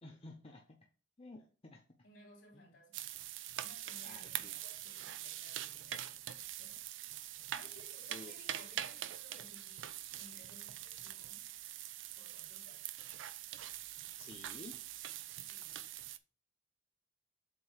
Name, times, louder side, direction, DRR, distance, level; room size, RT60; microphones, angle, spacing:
voice 1, 0.0-0.8 1.2-1.8 2.5-2.7 4.0-4.5 8.1-8.4 14.2-14.8, left 2 dB, 30° left, 0.7 m, -52 dB
voice 2, 2.0-3.1 3.6-6.2 6.6-6.8 7.5-11.5 12.1-12.9 15.4-15.9, left 1 dB, 70° left, 3.3 m, -61 dB
sound 1, 2.9-16.2, right 12 dB, 75° right, 0.4 m, -44 dB
7.7 x 2.7 x 5.7 m
head